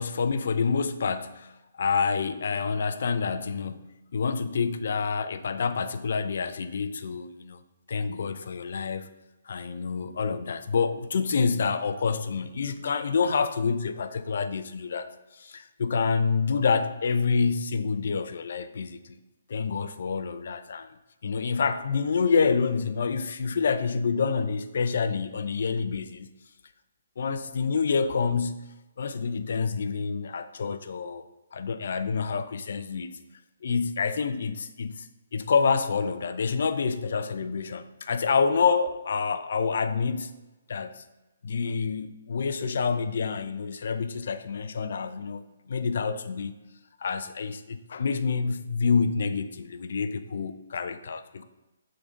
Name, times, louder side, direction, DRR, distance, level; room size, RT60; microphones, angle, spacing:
voice 1, 0.0-7.6 7.9-9.1 9.5-19.2 19.5-20.9 21.2-26.3 27.2-28.7 29.0-31.2 31.5-33.1 33.6-35.1 35.3-40.3 40.7-41.0 41.4-46.5 47.0-51.4, left 5 dB, 65° left, 0.6 m, -27 dB
6.8 x 4.0 x 5.1 m
hypercardioid pair, 140°, 0 cm